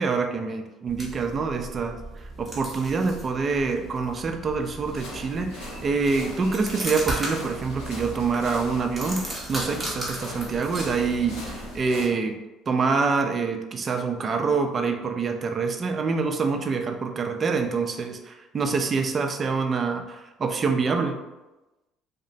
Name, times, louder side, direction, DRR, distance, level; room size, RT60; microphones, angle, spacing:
voice 1, 0.0-2.0 2.4-12.4 12.7-21.2, right 4 dB, 40° right, 4 dB, 0.4 m, -26 dB
sound 1, 0.9-11.9, right 1 dB, 10° right, 0.7 m, -37 dB
sound 2, 4.8-12.1, left 1 dB, 90° left, 1.0 m, -40 dB
2.8 x 2.1 x 2.6 m, 1.1 s
supercardioid pair, 85°, 0 cm